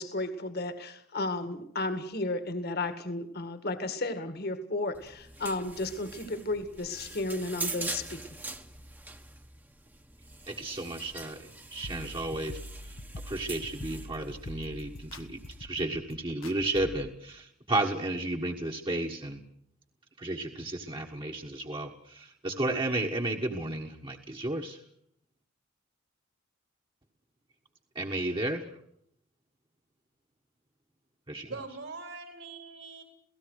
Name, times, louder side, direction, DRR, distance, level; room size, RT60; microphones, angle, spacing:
voice 1, 0.0-8.2, left 2 dB, 50° left, 9 dB, 2.0 m, -33 dB
sound 1, 4.9-15.7, right 3 dB, 10° right, 1.2 m, -43 dB
voice 2, 10.5-13.0 13.3-19.4 20.2-24.8 27.9-28.7 31.3-31.5, right 2 dB, 25° right, 1 dB, 1.5 m, -33 dB
sound 2, 11.8-17.1, left 1 dB, 70° left, 1.2 m, -44 dB
voice 3, 31.4-33.0, right 3 dB, 75° right, 4 dB, 4.2 m, -42 dB
28.5 x 18.0 x 6.5 m, 0.72 s
head